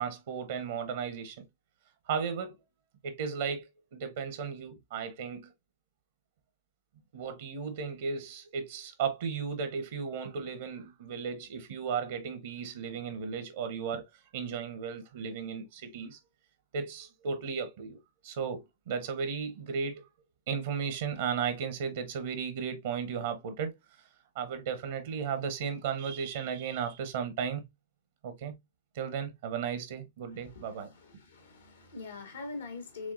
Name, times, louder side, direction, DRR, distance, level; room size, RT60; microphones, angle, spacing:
voice 1, 0.0-1.4 2.1-2.6 3.0-5.5 7.1-14.0 14.3-16.2 16.7-18.0 18.2-20.0 20.5-23.7 24.3-27.7 28.2-28.6 28.9-30.9, right 6 dB, 60° right, 0.8 m, -35 dB
voice 2, 30.3-33.1, left 3 dB, 80° left, 1.9 m, -43 dB
5.0 x 3.4 x 2.4 m
figure-of-eight pair, 105°, 0 cm